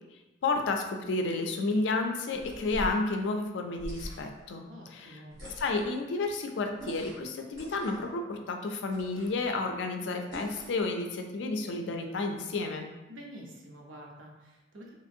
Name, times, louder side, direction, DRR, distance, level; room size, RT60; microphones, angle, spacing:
voice 1, 0.4-5.2 5.6-12.8, left 3 dB, 65° left, 4 dB, 0.4 m, -31 dB
sound 1, 2.3-3.0 3.8-4.4 5.3-5.9 6.8-7.3 7.5-8.1 8.9-9.5 10.3-10.8, equal, 65° right, 1.2 m, -42 dB
voice 2, 4.7-5.4 13.1-14.9, equal, 80° right, -2 dB, 0.7 m, -48 dB
2.9 x 2.5 x 2.6 m, 1.1 s
head